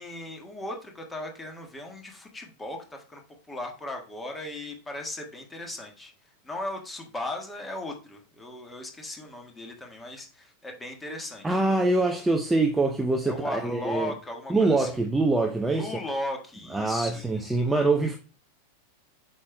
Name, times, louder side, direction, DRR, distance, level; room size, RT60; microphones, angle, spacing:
voice 1, 0.0-3.2 3.5-6.1 6.4-11.6 12.1-12.2 13.3-14.9 15.7-17.6, left 1 dB, 10° left, 1.6 m, -37 dB
voice 2, 11.4-14.1 14.5-16.0 16.7-18.2, right 2 dB, 5° right, 0.6 m, -24 dB
8.3 x 6.5 x 2.3 m
figure-of-eight pair, 90°, 0 cm